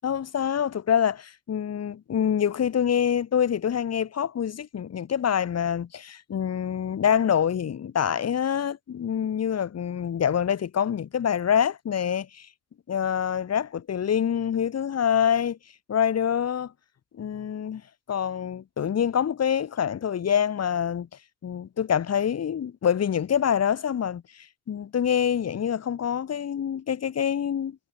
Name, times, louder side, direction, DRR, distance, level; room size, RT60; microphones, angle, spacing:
voice 1, 0.0-12.5 12.9-15.6 15.9-16.7 17.1-17.8 18.1-21.1 21.4-27.8, left 8 dB, 55° left, 6.5 m, -26 dB
cardioid pair, 90°, 30 cm